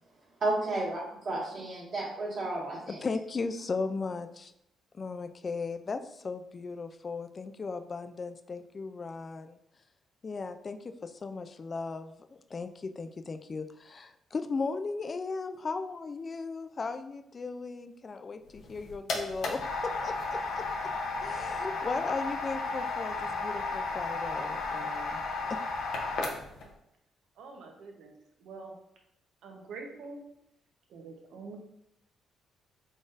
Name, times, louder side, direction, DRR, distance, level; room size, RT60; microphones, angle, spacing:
voice 1, 0.4-3.0, right 2 dB, 60° right, -5 dB, 1.5 m, -32 dB
voice 2, 3.0-4.5 4.9-9.6 10.2-20.6 21.2-25.2 25.5-25.6, left 4 dB, 35° left, 9 dB, 0.3 m, -37 dB
sound 1, 18.5-26.7, left 3 dB, 75° left, 0.7 m, -34 dB
voice 3, 27.4-28.1 28.4-28.7 29.4-30.2 30.9-31.6, right 4 dB, 80° right, 1 dB, 0.8 m, -45 dB
3.9 x 3.7 x 2.5 m, 0.80 s
cardioid pair, 90°, 0 cm